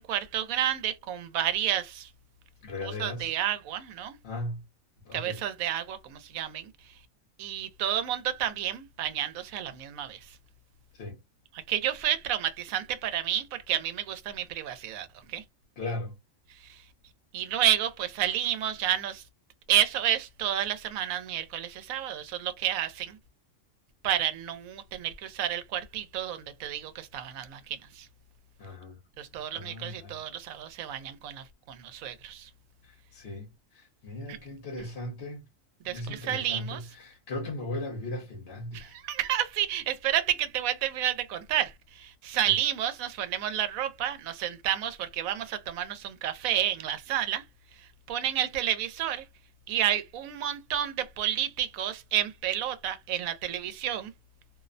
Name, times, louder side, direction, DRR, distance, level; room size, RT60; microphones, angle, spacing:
voice 1, 0.0-2.1 2.8-4.2 5.1-6.7 7.4-10.4 11.5-15.4 16.5-16.8 17.3-19.2 19.7-23.2 24.0-28.1 29.2-32.5 34.3-34.4 34.8-34.9 35.8-36.9 38.7-47.4 47.8-49.3 49.7-54.1, right 11 dB, 85° right, 1.0 m, -30 dB
voice 2, 2.6-3.3 4.2-4.6 5.1-5.4 11.0-11.2 15.8-16.1 28.6-28.9 29.5-30.1 33.1-33.4 34.0-35.4 35.9-36.8 37.0-38.9, left 2 dB, 55° left, 1.0 m, -37 dB
2.6 x 2.0 x 2.5 m
omnidirectional pair, 1.4 m